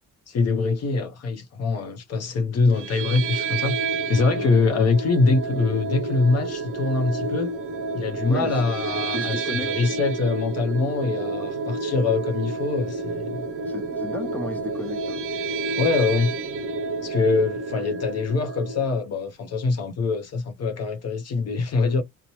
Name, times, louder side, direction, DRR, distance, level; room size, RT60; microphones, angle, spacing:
voice 1, 0.3-3.8 4.1-7.5 7.9-13.5 15.8-16.3 17.0-22.0, left 4 dB, 55° left, 0.7 m, -24 dB
sound 1, 2.7-18.9, right 4 dB, 45° right, 0.5 m, -30 dB
voice 2, 4.3-4.7 8.3-8.7 9.1-9.8 13.7-15.2, left 1 dB, 5° left, 1.0 m, -34 dB
2.7 x 2.1 x 2.9 m
cardioid pair, 90°, 30 cm